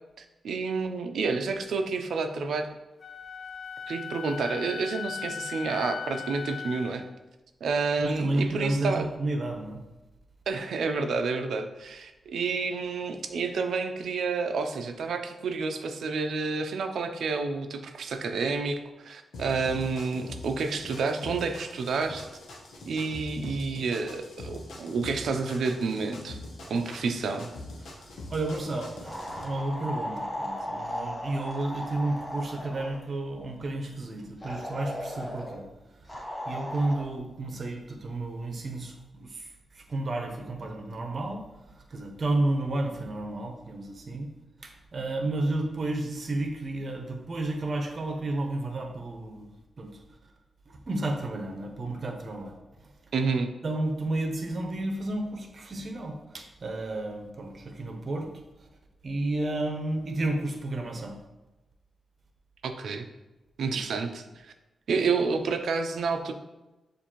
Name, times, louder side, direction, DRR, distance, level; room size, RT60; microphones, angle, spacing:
voice 1, 0.2-2.7 3.9-7.0 7.6-9.1 10.5-22.3 22.9-26.4 26.7-27.5 53.1-53.5 62.6-63.1 63.6-64.5 64.9-66.3, right 4 dB, 80° right, 6 dB, 0.5 m, -29 dB
Wind instrument woodwind instrument, 3.0-7.1, left 7 dB, 55° left, 0.5 m, -38 dB
voice 2, 8.0-9.8 26.7-26.8 27.8-35.7 36.5-39.5 39.7-41.4 41.8-44.3 44.6-49.5 49.8-49.9 50.7-52.5 52.8-52.9 53.6-58.3 59.0-61.2 63.7-64.0, right 2 dB, 50° right, 3 dB, 0.8 m, -32 dB
sound 1, 19.3-29.4, left 2 dB, 85° left, 0.8 m, -43 dB
sound 2, 29.0-33.0 34.4-35.6 36.1-37.0, equal, 25° left, 1.2 m, -36 dB
6.9 x 2.6 x 3.0 m, 1.0 s
cardioid pair, 80°, 0 cm